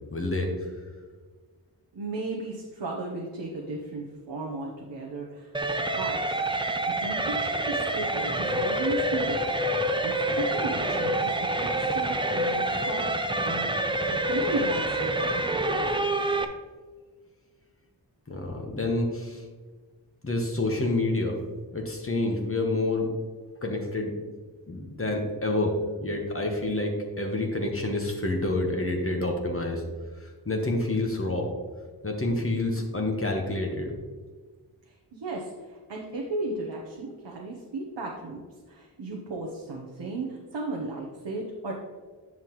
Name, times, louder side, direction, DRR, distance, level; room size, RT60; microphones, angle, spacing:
voice 1, 0.1-0.5 18.3-19.4 20.2-21.4 21.7-23.1 23.6-24.1 24.7-29.8 30.2-31.5 32.0-33.9, left 2 dB, 30° left, 1 dB, 1.3 m, -28 dB
voice 2, 1.9-5.5 6.0-6.5 7.0-9.5 10.0-11.3 11.6-13.0 13.4-13.8 14.1-15.3 15.7-16.1 34.8-38.4 38.7-41.7, right 3 dB, 75° right, -1 dB, 1.1 m, -35 dB
sound 1, 5.5-16.4, right 1 dB, 10° right, 0.6 m, -27 dB
9.5 x 5.6 x 3.1 m, 1.4 s
cardioid pair, 55°, 43 cm